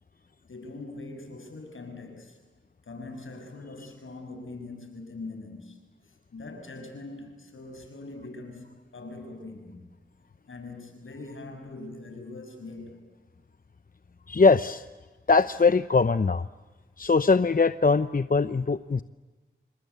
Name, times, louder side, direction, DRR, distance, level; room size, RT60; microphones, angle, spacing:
voice 1, 0.4-2.4 2.8-9.9 10.5-13.1, left 2 dB, 80° left, 5 dB, 6.4 m, -42 dB
voice 2, 14.3-14.8 15.3-16.5 17.0-19.0, left 4 dB, 45° left, 12 dB, 0.8 m, -21 dB
27.0 x 26.5 x 8.3 m, 1.2 s
cardioid pair, 45°, 20 cm